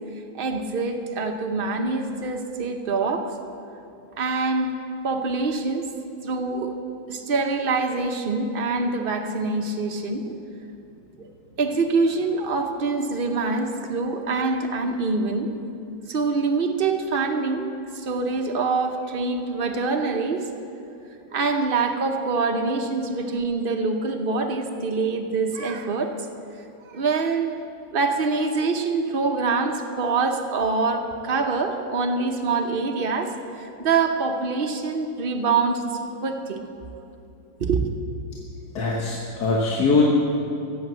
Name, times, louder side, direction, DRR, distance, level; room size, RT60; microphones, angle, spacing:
voice 1, 0.3-3.3 4.2-4.7 5.0-5.9 6.2-6.7 7.1-10.4 11.2-11.3 11.6-15.5 16.1-20.4 21.3-26.1 26.9-27.6 27.9-36.6 37.6-37.9, right 4 dB, 60° right, 4 dB, 0.5 m, -25 dB
voice 2, 38.7-40.0, left 4 dB, 55° left, -2 dB, 1.7 m, -21 dB
15.0 x 7.9 x 8.0 m, 2.7 s
omnidirectional pair, 2.2 m